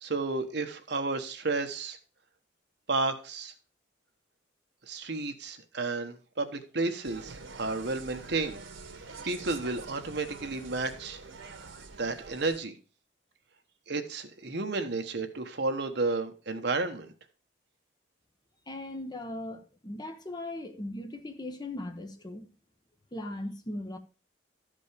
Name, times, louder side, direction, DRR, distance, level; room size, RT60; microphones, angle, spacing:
voice 1, 0.0-2.0 2.9-3.5 4.9-8.6 9.3-11.2 12.0-12.7 13.9-17.1, right 3 dB, 60° right, 1.2 m, -32 dB
Insect, 7.0-12.6, right 4 dB, 85° right, 1.5 m, -46 dB
voice 2, 18.7-22.5 23.1-24.0, left 1 dB, 20° left, 0.9 m, -38 dB
13.0 x 5.2 x 5.0 m
head